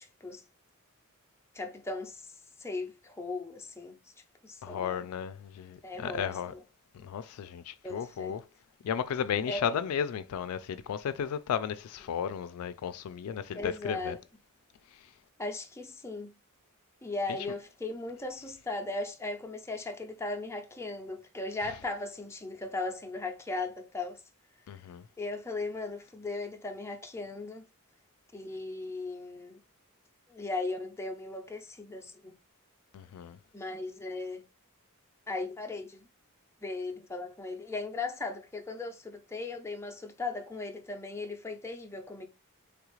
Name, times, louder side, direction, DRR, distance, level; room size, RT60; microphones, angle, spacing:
voice 1, 1.5-2.2 2.6-4.0 4.4-5.0 5.8-6.6 7.8-8.4 9.5-9.7 13.5-14.2 15.4-16.3 17.0-24.2 25.2-27.7 28.3-29.6 30.3-32.3 33.5-34.4 35.3-36.0 36.6-42.2, left 3 dB, 10° left, 0.5 m, -37 dB
voice 2, 4.6-6.5 6.9-8.4 8.8-14.2 17.3-17.4 24.7-25.0 32.9-33.4, left 8 dB, 85° left, 0.3 m, -34 dB
3.3 x 2.4 x 3.0 m
head